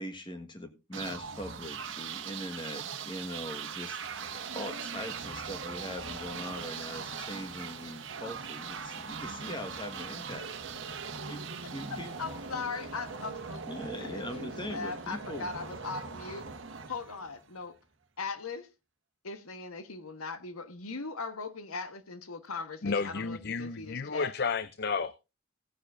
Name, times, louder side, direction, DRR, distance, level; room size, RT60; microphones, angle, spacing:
voice 1, 0.0-4.0 4.5-10.5 11.3-11.4 11.7-12.1 13.7-15.5, equal, 20° left, 1.5 m, -41 dB
sound 1, 0.9-17.6, right 5 dB, 55° right, 1.2 m, -40 dB
voice 2, 11.9-16.5 16.9-17.8 18.2-18.7 19.2-24.3, left 4 dB, 85° left, 1.3 m, -39 dB
voice 3, 22.8-25.3, left 5 dB, 45° left, 0.5 m, -32 dB
17.5 x 9.6 x 2.6 m
head